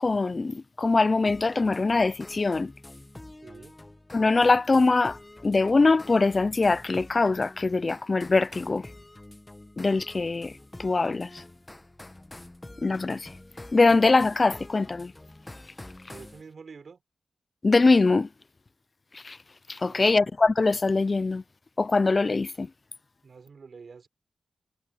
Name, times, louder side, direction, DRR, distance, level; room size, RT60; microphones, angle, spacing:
voice 1, 0.0-2.7 4.1-8.9 9.8-11.4 12.8-13.3 13.7-15.1 17.6-18.3 19.1-19.4 19.7-21.4 21.8-22.7, left 3 dB, 40° left, 0.4 m, -23 dB
sound 1, 1.3-16.4, left 2 dB, 20° left, 1.0 m, -47 dB
voice 2, 3.4-3.8 16.1-17.0 19.9-20.3 23.2-24.1, right 5 dB, 65° right, 5.1 m, -47 dB
wide cardioid pair, 90°, 0 cm